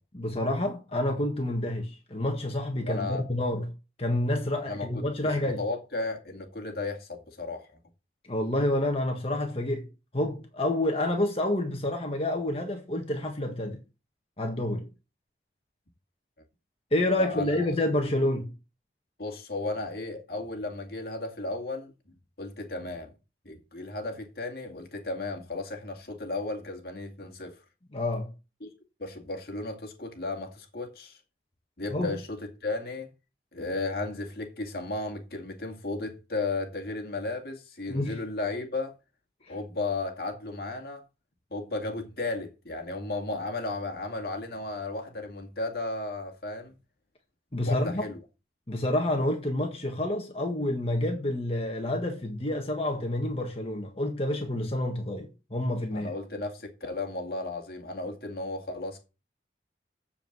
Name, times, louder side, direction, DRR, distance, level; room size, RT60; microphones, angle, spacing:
voice 1, 0.1-3.7 4.0-5.6 8.3-9.9 10.1-13.8 14.4-14.9 16.9-18.5 27.9-28.3 31.9-32.1 37.9-38.2 39.4-39.5 47.5-48.0 48.7-56.1, left 1 dB, 35° left, 1.6 m, -28 dB
voice 2, 2.8-3.2 4.6-7.8 17.2-17.7 19.2-21.9 22.4-23.1 23.4-27.6 28.6-28.7 29.0-31.2 31.8-33.1 33.5-39.0 39.5-41.0 41.5-46.7 47.6-48.2 55.9-59.0, left 2 dB, 55° left, 2.2 m, -34 dB
7.4 x 7.0 x 8.0 m
head